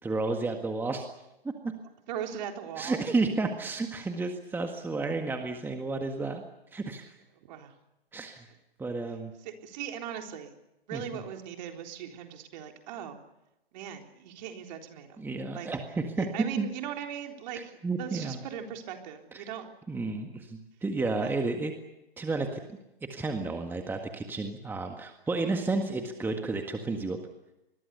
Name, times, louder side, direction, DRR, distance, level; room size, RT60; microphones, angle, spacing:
voice 1, 0.0-1.1 1.4-1.7 2.8-6.4 6.7-7.2 8.1-8.5 8.8-9.3 10.9-11.2 15.2-16.3 16.6-16.7 17.8-18.4 19.3-19.5 19.9-21.7 22.2-22.6 23.1-27.2, right 3 dB, 5° right, 4 dB, 1.8 m, -31 dB
voice 2, 2.1-3.0 7.4-7.7 9.4-10.5 10.9-13.2 13.7-15.2 15.5-15.7 16.2-19.7 21.2-21.4, right 9 dB, 45° right, 3 dB, 3.8 m, -39 dB
26.0 x 22.0 x 6.9 m, 0.92 s
hypercardioid pair, 125°, 30 cm